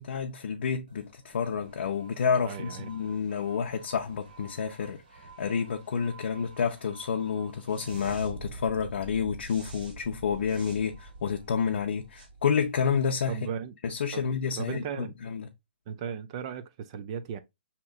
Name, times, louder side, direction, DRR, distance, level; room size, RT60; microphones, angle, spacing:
voice 1, 0.0-13.4 13.8-15.5, left 6 dB, 65° left, 0.6 m, -29 dB
sound 1, 0.9-13.3, right 3 dB, 50° right, 1.7 m, -47 dB
voice 2, 2.4-2.9 13.3-13.7 14.1-14.3 14.6-15.1 15.9-17.4, right 7 dB, 30° right, 0.4 m, -36 dB
6.1 x 2.9 x 2.3 m
hypercardioid pair, 155°, 6 cm